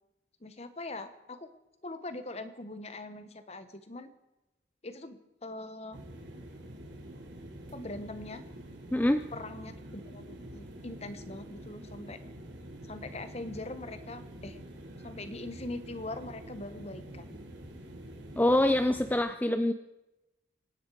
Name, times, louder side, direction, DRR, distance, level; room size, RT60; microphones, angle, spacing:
voice 1, 0.4-1.5 1.8-4.1 4.8-6.0 7.7-8.4 9.3-12.2 12.9-14.6 15.0-17.4, left 2 dB, 35° left, 11 dB, 1.2 m, -42 dB
sound 1, 5.9-19.2, right 1 dB, 80° right, 3.5 m, -46 dB
voice 2, 8.9-9.2 18.4-19.7, left 1 dB, 10° left, 9 dB, 0.4 m, -25 dB
25.5 x 10.0 x 4.9 m, 0.98 s
head